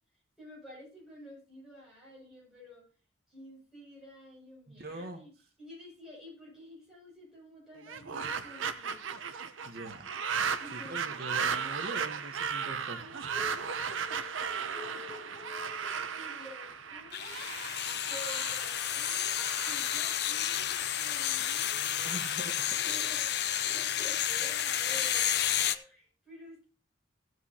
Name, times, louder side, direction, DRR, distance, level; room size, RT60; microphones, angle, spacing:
voice 1, 0.4-2.8 3.3-5.3 5.6-9.2 10.6-11.2 13.0-17.4 18.1-22.1 22.6-26.7, left 1 dB, ahead, -6 dB, 6.8 m, -50 dB
voice 2, 4.8-5.2 9.6-10.1 10.7-13.0 22.0-22.8, right 1 dB, 50° right, 6 dB, 1.1 m, -42 dB
sound 1, 7.8-21.0, right 6 dB, 75° right, 0.7 m, -36 dB
sound 2, 17.1-25.8, left 10 dB, 55° left, 0.6 m, -31 dB
16.0 x 7.9 x 2.8 m, 0.37 s
head